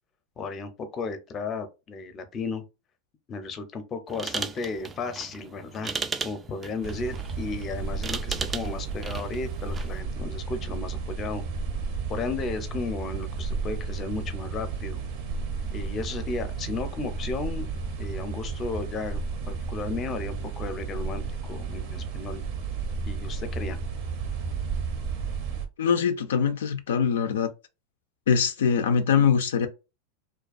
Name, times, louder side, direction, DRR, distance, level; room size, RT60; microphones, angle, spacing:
voice 1, 0.4-2.6 3.3-5.9 6.2-11.4 12.1-15.0 15.7-17.7 18.0-22.4 23.1-23.8, left 4 dB, 30° left, 0.5 m, -34 dB
sound 1, 4.1-10.0, right 5 dB, 20° right, 0.3 m, -36 dB
sound 2, 6.8-25.7, right 5 dB, 60° right, 0.6 m, -33 dB
voice 2, 25.8-27.5 28.3-29.7, left 7 dB, 85° left, 0.3 m, -23 dB
2.3 x 2.2 x 2.5 m
hypercardioid pair, 115°, 0 cm